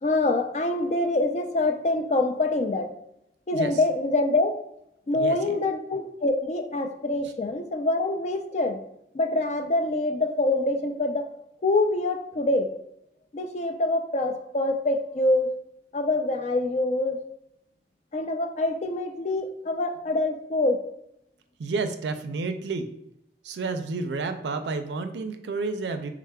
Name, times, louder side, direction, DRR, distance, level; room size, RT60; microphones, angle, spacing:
voice 1, 0.0-2.9 3.5-4.6 5.1-8.8 9.1-11.3 11.6-12.7 13.3-15.5 15.9-17.2 18.1-20.8, left 2 dB, 40° left, 6 dB, 0.3 m, -25 dB
voice 2, 5.1-5.6 21.6-22.9 23.4-26.1, right 3 dB, 80° right, 8 dB, 0.4 m, -30 dB
4.8 x 3.5 x 2.2 m, 0.81 s
head